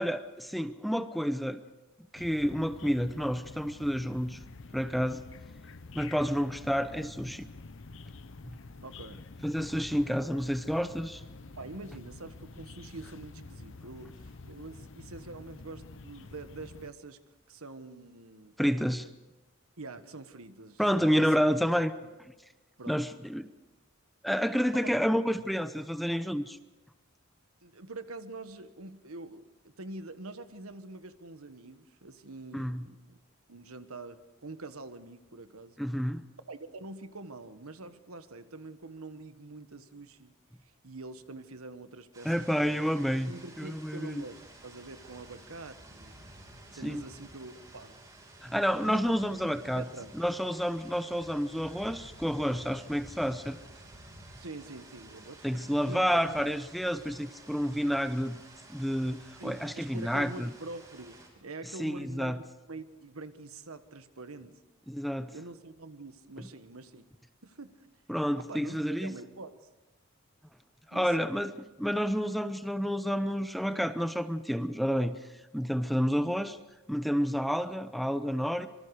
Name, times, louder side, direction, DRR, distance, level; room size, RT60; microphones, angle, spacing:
voice 1, 0.0-1.6 2.1-4.4 4.7-5.2 5.9-7.5 8.4-8.6 9.4-11.2 18.6-19.1 20.8-21.9 22.9-23.5 24.2-26.6 32.5-32.8 35.8-36.2 42.2-44.2 46.8-47.0 48.4-49.8 50.1-53.6 55.4-58.4 58.7-60.5 61.8-62.4 64.9-65.3 66.4-66.5 68.1-69.1 70.9-71.5 71.8-75.2 75.5-76.6 76.9-78.7, equal, ahead, 10 dB, 0.7 m, -29 dB
sound 1, 2.1-16.9, left 3 dB, 60° left, 0.8 m, -48 dB
voice 2, 8.8-9.3 9.5-9.9 11.6-17.2 17.5-18.5 19.8-21.3 22.0-22.1 22.8-23.1 24.8-24.9 27.6-33.2 33.5-35.8 36.5-40.3 40.8-42.9 43.3-46.2 46.7-48.0 48.8-49.2 49.7-50.1 54.4-56.2 59.4-62.4 62.7-64.5 65.3-67.0 67.4-67.9 68.4-69.7 70.9-71.4 76.1-76.2, right 2 dB, 85° right, 10 dB, 1.4 m, -45 dB
sound 2, 42.1-61.3, right 1 dB, 20° right, 6.0 m, -52 dB
26.0 x 24.0 x 4.9 m, 1.1 s
head